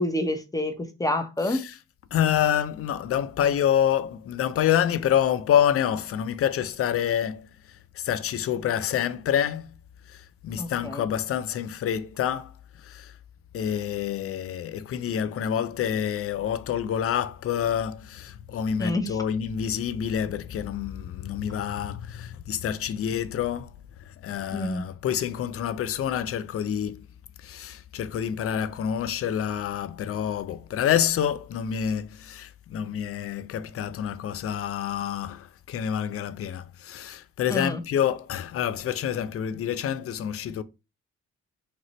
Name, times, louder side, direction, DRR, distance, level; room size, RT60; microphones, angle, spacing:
voice 1, 0.0-1.6 10.6-11.1 18.8-19.2 24.5-24.8 37.5-37.8, left 1 dB, 10° left, 0.8 m, -28 dB
voice 2, 2.1-7.5 7.9-9.7 10.1-12.5 12.8-13.1 13.5-23.7 24.1-27.0 27.4-40.6, left 9 dB, 45° left, 0.5 m, -27 dB
2.9 x 2.5 x 3.1 m
hypercardioid pair, 45°, 33 cm